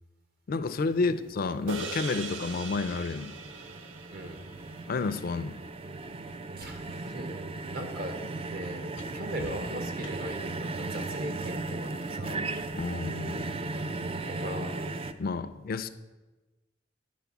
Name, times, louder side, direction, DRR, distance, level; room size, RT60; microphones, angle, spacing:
voice 1, 0.5-3.3 4.9-5.6 12.8-13.5 15.2-15.9, left 4 dB, 50° left, 10 dB, 0.4 m, -30 dB
sound 1, 0.8-15.1, right 2 dB, 30° right, 0.4 m, -37 dB
sound 2, 1.7-6.3, right 5 dB, 85° right, 0.6 m, -41 dB
sound 3, 2.7-6.5 6.8-10.6 12.6-12.8, left 3 dB, 85° left, 0.7 m, -54 dB
voice 2, 4.1-4.4 6.6-7.4 7.7-8.2 8.4-8.8 9.1-12.4 14.2-14.8, right 1 dB, 55° right, 4 dB, 1.2 m, -39 dB
9.4 x 4.1 x 7.0 m, 1.2 s
head